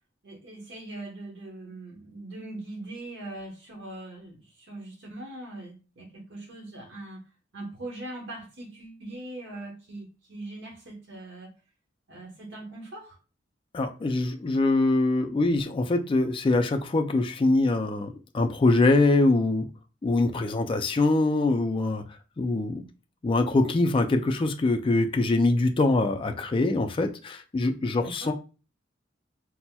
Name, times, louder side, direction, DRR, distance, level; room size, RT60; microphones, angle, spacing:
voice 1, 0.2-7.2 7.5-11.5 12.1-13.2 28.0-28.3, right 2 dB, 65° right, 1.0 m, -41 dB
voice 2, 13.7-19.7 20.0-22.0 22.4-22.8 23.2-28.3, left 2 dB, 30° left, 0.3 m, -23 dB
4.1 x 2.0 x 2.2 m
head